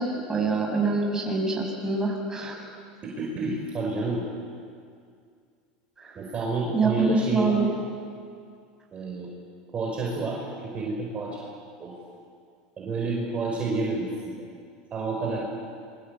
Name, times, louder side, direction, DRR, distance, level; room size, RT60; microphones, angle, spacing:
voice 1, 0.0-2.6 6.0-6.1 6.7-7.7, right 3 dB, 15° right, 0 dB, 7.0 m, -25 dB
voice 2, 3.0-4.2 6.1-7.6 8.9-9.3 9.7-11.4 11.8-11.9 12.8-14.4 14.9-15.4, right 3 dB, 30° right, -2 dB, 5.2 m, -30 dB
26.5 x 23.0 x 8.4 m, 2.3 s
supercardioid pair, 120°, 4 cm